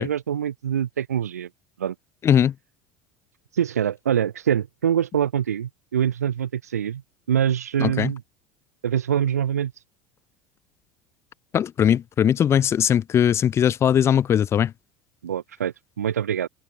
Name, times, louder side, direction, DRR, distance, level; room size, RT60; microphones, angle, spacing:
voice 1, 0.0-1.5 1.8-1.9 3.5-7.0 7.3-8.2 8.8-9.8 15.2-16.5, right 9 dB, 80° right, 0.9 m, -24 dB
voice 2, 2.2-2.5 7.8-8.1 11.5-14.7, left 9 dB, 30° left, 0.6 m, -20 dB
open air
figure-of-eight pair, 70°, 8 cm